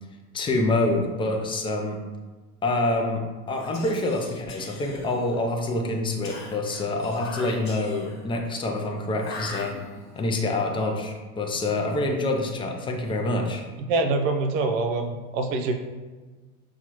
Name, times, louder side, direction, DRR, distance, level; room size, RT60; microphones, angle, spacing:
voice 1, 0.3-2.0 2.6-9.7 10.2-13.6, left 2 dB, 15° left, 2 dB, 0.4 m, -26 dB
Whispering, 3.5-5.5 6.2-8.3 9.2-10.2, left 2 dB, 40° left, 1.1 m, -41 dB
voice 2, 13.9-15.7, right 3 dB, 65° right, 4 dB, 0.7 m, -25 dB
5.8 x 2.4 x 2.9 m, 1.3 s
hypercardioid pair, 105°, 43 cm